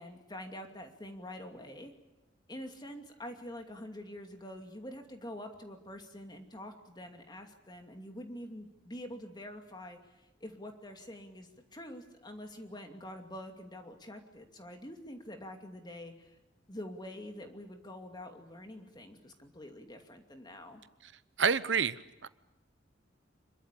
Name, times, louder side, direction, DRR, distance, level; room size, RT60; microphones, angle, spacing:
voice 1, 0.0-1.9 2.5-16.4 16.7-20.8, left 1 dB, 25° left, 4 dB, 2.6 m, -46 dB
voice 2, 21.4-22.3, right 6 dB, 75° right, 15 dB, 1.0 m, -28 dB
25.5 x 22.5 x 8.5 m, 0.97 s
head